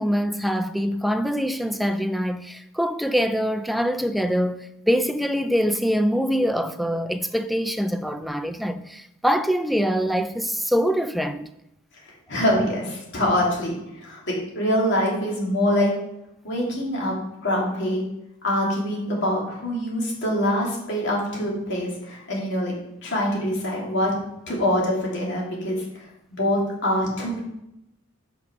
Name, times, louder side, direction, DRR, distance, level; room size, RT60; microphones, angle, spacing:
voice 1, 0.0-11.5, equal, ahead, 0.4 m, -24 dB
voice 2, 12.3-15.9 16.4-17.1 17.4-18.0 18.4-22.7 23.0-24.1 24.5-27.4, equal, 55° left, 2.8 m, -24 dB
6.5 x 5.9 x 5.9 m
head